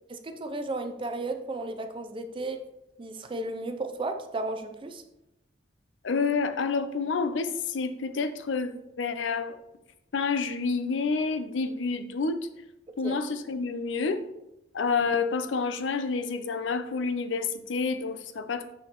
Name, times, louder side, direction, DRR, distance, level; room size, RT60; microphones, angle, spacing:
voice 1, 0.1-2.6 3.0-5.0 13.0-13.2, right 2 dB, 25° right, 7 dB, 0.5 m, -34 dB
voice 2, 6.0-9.6 10.1-12.5 13.0-14.2 14.7-18.7, left 4 dB, 75° left, 10 dB, 0.5 m, -29 dB
6.8 x 6.2 x 3.0 m, 0.91 s
head